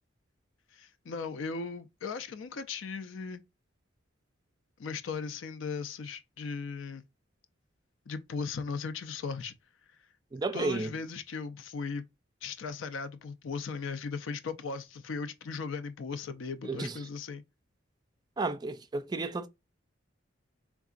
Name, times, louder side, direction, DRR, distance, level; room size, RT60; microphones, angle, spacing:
voice 1, 0.7-3.4 4.8-7.0 8.1-9.5 10.5-12.0 12.4-17.4, left 4 dB, 85° left, 0.5 m, -37 dB
voice 2, 10.3-10.9 16.7-16.9 18.4-19.5, right 3 dB, 20° right, 0.3 m, -32 dB
3.8 x 3.5 x 2.4 m
head